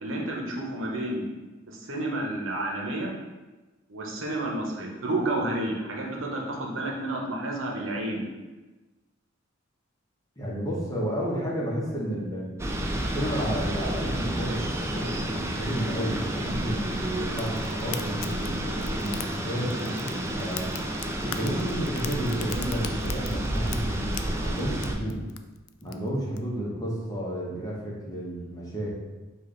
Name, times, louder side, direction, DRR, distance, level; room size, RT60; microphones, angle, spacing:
voice 1, 0.0-1.2 1.7-3.1 3.9-8.2, right 1 dB, 80° right, -1 dB, 0.8 m, -30 dB
voice 2, 10.4-12.5 13.0-20.7 21.2-25.2 25.8-28.9, equal, 20° left, -5 dB, 1.0 m, -31 dB
sound 1, 12.6-25.0, right 1 dB, 15° right, 0.3 m, -31 dB
Fire, 17.3-26.4, left 9 dB, 85° left, 0.3 m, -42 dB
5.1 x 2.4 x 3.8 m, 1.2 s
head